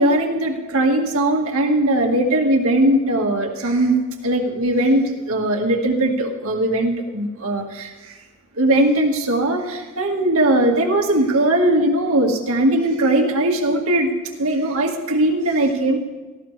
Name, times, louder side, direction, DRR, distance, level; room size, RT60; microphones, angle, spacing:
voice 1, 0.0-4.0 4.2-8.2 8.5-14.1 14.4-16.0, right 1 dB, 80° right, 1 dB, 1.8 m, -19 dB
17.5 x 15.0 x 3.3 m, 1.2 s
head